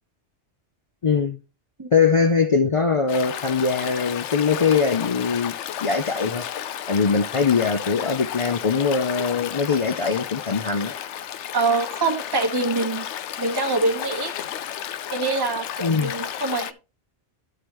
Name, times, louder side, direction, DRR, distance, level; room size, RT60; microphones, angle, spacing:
voice 1, 1.0-1.4 1.9-5.5 5.8-6.4 6.9-10.9 15.8-16.1, left 5 dB, 50° left, 0.4 m, -22 dB
Stream, 3.1-16.7, left 10 dB, 80° left, 0.9 m, -32 dB
voice 2, 11.5-13.0 13.4-14.3 15.1-16.7, right 3 dB, 20° right, 1.1 m, -24 dB
13.0 x 4.9 x 3.0 m
omnidirectional pair, 1.2 m